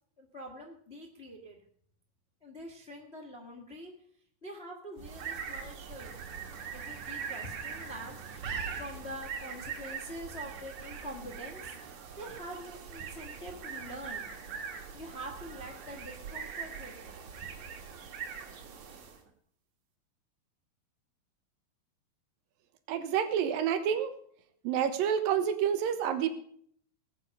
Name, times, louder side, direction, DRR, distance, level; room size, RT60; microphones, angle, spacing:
voice 1, 0.2-1.6 2.4-3.9 4.4-6.1 6.7-11.7 12.2-14.3 14.9-17.2, equal, 30° left, 1 dB, 1.1 m, -45 dB
sound 1, 5.0-19.3, right 6 dB, 60° right, 2.7 m, -42 dB
voice 2, 22.9-24.1 24.6-26.3, right 8 dB, 75° right, 9 dB, 2.7 m, -28 dB
19.5 x 8.3 x 5.4 m, 0.62 s
omnidirectional pair, 4.2 m